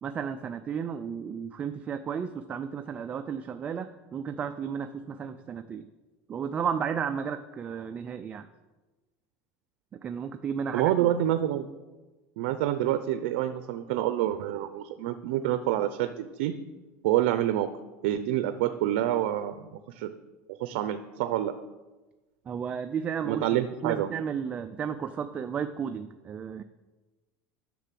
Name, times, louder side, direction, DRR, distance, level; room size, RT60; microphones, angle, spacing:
voice 1, 0.0-5.9 6.3-8.5 9.9-11.1 22.5-23.5 23.8-26.6, right 7 dB, 20° right, 8 dB, 0.4 m, -33 dB
voice 2, 10.7-11.7 12.4-16.5 17.0-17.7 18.0-20.1 20.5-21.5 23.2-24.1, right 12 dB, 70° right, 10 dB, 0.6 m, -27 dB
10.0 x 6.5 x 7.6 m, 1.2 s
cardioid pair, 165°, 6 cm